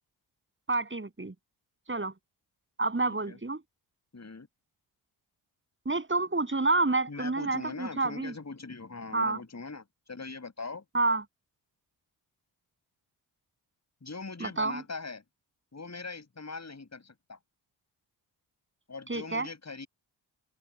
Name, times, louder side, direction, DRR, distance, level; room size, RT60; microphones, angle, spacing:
voice 1, 0.7-1.3 1.9-2.1 2.8-3.6 5.8-8.3 9.1-9.4 10.9-11.2 14.4-14.8 19.1-19.5, right 3 dB, 25° right, 7.9 m, -28 dB
voice 2, 3.0-3.4 4.1-4.5 7.1-10.8 14.0-15.2 15.7-17.4 18.9-19.9, left 4 dB, 35° left, 7.0 m, -41 dB
supercardioid pair, 55°, 49 cm